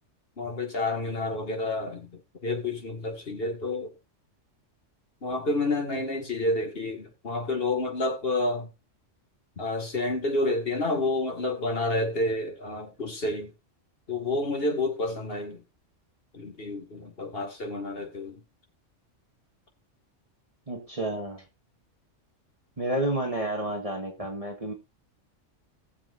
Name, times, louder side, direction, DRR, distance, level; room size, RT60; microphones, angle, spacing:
voice 1, 0.4-3.9 5.2-8.7 9.6-13.5 14.1-15.6 16.3-18.4, left 2 dB, 50° left, 2.3 m, -29 dB
voice 2, 20.7-21.4 22.8-24.7, right 1 dB, 30° right, 1.6 m, -30 dB
18.5 x 7.1 x 2.6 m
omnidirectional pair, 1.3 m